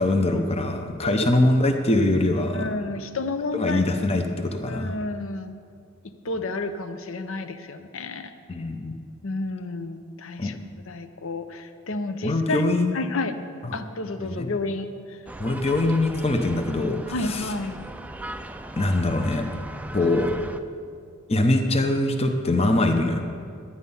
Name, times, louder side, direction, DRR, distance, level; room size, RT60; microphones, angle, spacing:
voice 1, 0.0-2.7 3.5-4.9 8.5-9.0 10.4-10.5 12.2-13.0 13.6-13.8 14.2-14.5 15.4-17.5 18.7-19.4 19.9-20.3 21.3-23.2, left 2 dB, 25° left, 5 dB, 0.7 m, -23 dB
voice 2, 2.5-3.9 4.7-5.6 6.0-8.3 9.2-10.6 10.9-13.3 13.7-15.2 17.1-17.8, left 3 dB, 60° left, 9 dB, 0.7 m, -31 dB
sound 1, 15.3-20.6, right 1 dB, 5° right, 0.3 m, -38 dB
12.0 x 9.6 x 5.5 m, 2.3 s
head